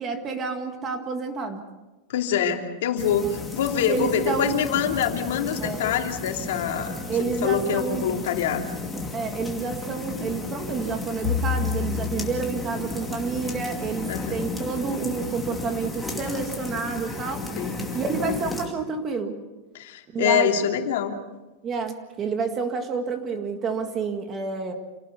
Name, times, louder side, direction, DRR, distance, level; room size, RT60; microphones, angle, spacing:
voice 1, 0.0-1.6 3.9-4.6 5.6-5.8 7.1-8.0 9.1-17.4 17.9-19.4 20.1-20.5 21.6-24.7, right 5 dB, 20° right, 6 dB, 1.8 m, -29 dB
voice 2, 2.1-8.7 14.1-14.4 17.6-17.8 19.7-21.2, left 8 dB, 70° left, 4 dB, 2.9 m, -25 dB
sound 1, 3.0-18.7, left 3 dB, 5° left, 2.5 m, -34 dB
Bowed string instrument, 11.2-15.6, left 7 dB, 45° left, 4.4 m, -32 dB
27.5 x 18.5 x 6.9 m, 1.1 s
supercardioid pair, 180°, 0 cm